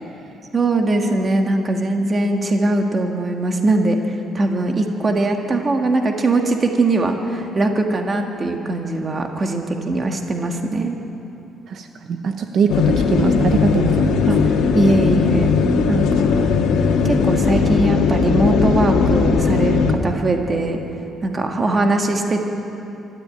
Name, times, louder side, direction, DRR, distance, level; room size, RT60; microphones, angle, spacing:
voice 1, 0.5-11.0 14.2-15.5 15.9-16.5 17.0-20.8 21.2-22.4, right 2 dB, 25° right, 3 dB, 1.6 m, -21 dB
voice 2, 11.7-14.3, right 6 dB, 50° right, 6 dB, 0.9 m, -22 dB
sound 1, 12.7-19.9, left 5 dB, 85° left, 1.8 m, -18 dB
24.5 x 13.5 x 8.8 m, 2.9 s
cardioid pair, 155°, 0 cm